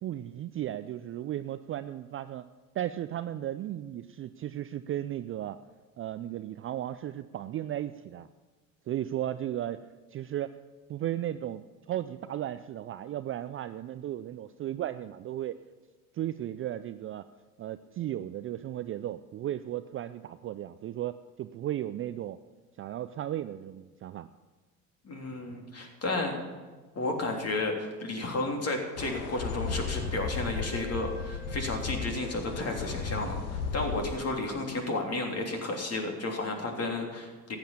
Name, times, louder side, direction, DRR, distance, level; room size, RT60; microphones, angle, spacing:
voice 1, 0.0-2.5 2.7-5.6 6.0-8.3 8.9-10.6 10.9-11.6 11.9-15.6 16.1-17.3 17.6-22.4 22.8-24.3, right 12 dB, 30° right, 12 dB, 0.4 m, -35 dB
voice 2, 25.0-26.4 26.9-37.6, left 2 dB, 35° left, 2 dB, 3.4 m, -32 dB
Wind instrument woodwind instrument, 28.9-33.2, left 3 dB, 20° left, 5.4 m, -49 dB
sound 1, 29.0-34.1, left 5 dB, 70° left, 1.8 m, -35 dB
14.5 x 8.9 x 7.2 m, 1.3 s
hypercardioid pair, 70°, 44 cm